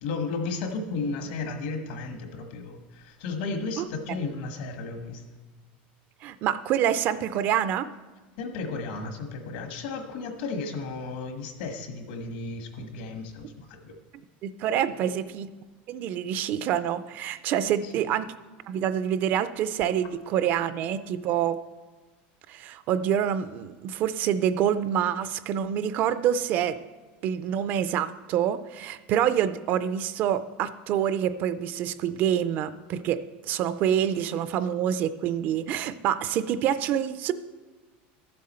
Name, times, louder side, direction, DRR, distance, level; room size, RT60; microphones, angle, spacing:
voice 1, 0.0-5.2 8.4-13.9 14.9-15.1 17.8-18.1, left 3 dB, 70° left, 6 dB, 1.4 m, -34 dB
voice 2, 6.2-7.9 13.4-13.5 14.4-15.5 15.9-18.3 18.7-21.6 22.5-26.8 27.2-33.2 33.5-37.3, right 9 dB, 35° right, 13 dB, 0.3 m, -26 dB
13.0 x 7.6 x 4.3 m, 1.3 s
supercardioid pair, 170°, 5 cm